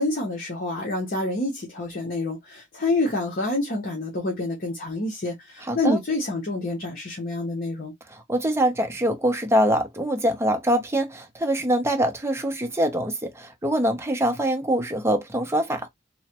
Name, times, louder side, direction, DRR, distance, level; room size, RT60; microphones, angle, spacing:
voice 1, 0.0-7.9, left 2 dB, 45° left, 0.8 m, -27 dB
voice 2, 5.7-6.0 8.1-15.9, right 1 dB, 15° right, 0.6 m, -24 dB
3.1 x 2.1 x 2.8 m
head